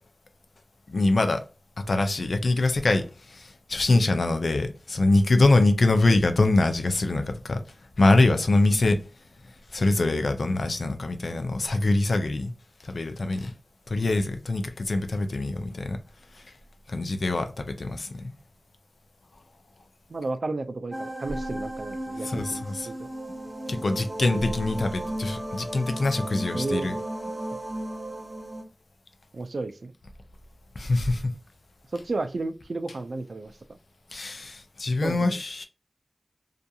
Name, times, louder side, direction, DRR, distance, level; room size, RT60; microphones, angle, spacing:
voice 1, 0.9-1.4 1.8-7.6 8.0-9.0 9.7-12.5 12.8-13.5 13.9-16.0 16.9-18.3 22.2-22.9 23.7-26.9 30.8-31.3 34.1-35.6, left 2 dB, 70° left, 0.4 m, -24 dB
voice 2, 20.1-23.1 26.5-26.9 29.3-29.9 31.9-33.8 35.0-35.4, right 3 dB, 70° right, 0.4 m, -32 dB
sound 1, 20.9-28.6, right 1 dB, 25° right, 0.6 m, -35 dB
2.7 x 2.4 x 2.2 m
wide cardioid pair, 75°, 0 cm